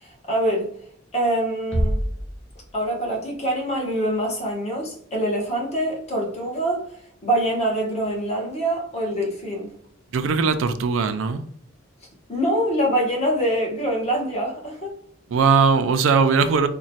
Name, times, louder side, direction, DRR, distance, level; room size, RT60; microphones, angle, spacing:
voice 1, 0.0-0.7 1.1-2.0 2.7-6.9 7.2-9.7 12.3-15.0, right 1 dB, 35° left, 1.0 m, -24 dB
sound 1, 1.7-3.3, equal, 5° left, 0.7 m, -27 dB
voice 2, 10.1-11.4 15.3-16.7, right 5 dB, 75° right, 0.4 m, -19 dB
3.0 x 2.2 x 4.1 m
head